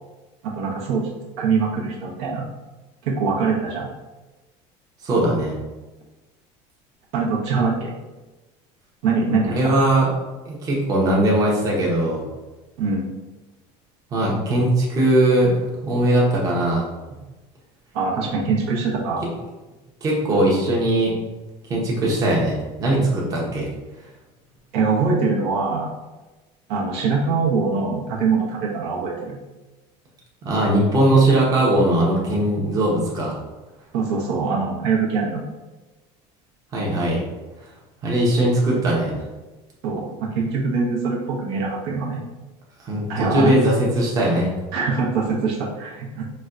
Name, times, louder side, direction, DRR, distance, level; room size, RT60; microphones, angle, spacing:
voice 1, 0.4-1.1 1.4-2.5 3.0-3.9 7.1-7.9 9.0-9.8 12.8-13.1 17.9-19.3 24.7-25.9 26.7-29.4 33.9-35.4 39.8-42.2 43.1-43.5 44.7-46.2, right 4 dB, 80° right, -3 dB, 0.8 m, -23 dB
voice 2, 5.0-5.5 9.4-10.1 10.5-12.2 14.1-15.5 15.8-16.9 20.0-21.1 21.7-23.7 30.4-33.4 36.7-37.2 38.0-39.1 42.8-44.5, right 1 dB, 25° right, -4 dB, 0.7 m, -19 dB
4.1 x 2.2 x 2.4 m, 1.1 s
cardioid pair, 155°, 14 cm